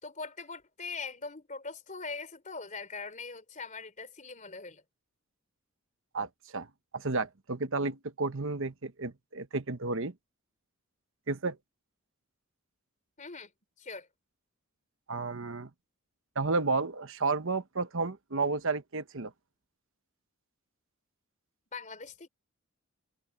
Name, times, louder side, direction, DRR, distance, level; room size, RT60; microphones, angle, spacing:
voice 1, 0.0-4.8 13.2-13.5 13.8-14.1 21.7-22.3, left 4 dB, 35° left, 3.7 m, -41 dB
voice 2, 6.1-6.7 6.9-10.1 11.3-11.6 15.1-15.7 16.4-19.3, right 3 dB, 60° right, 1.1 m, -32 dB
head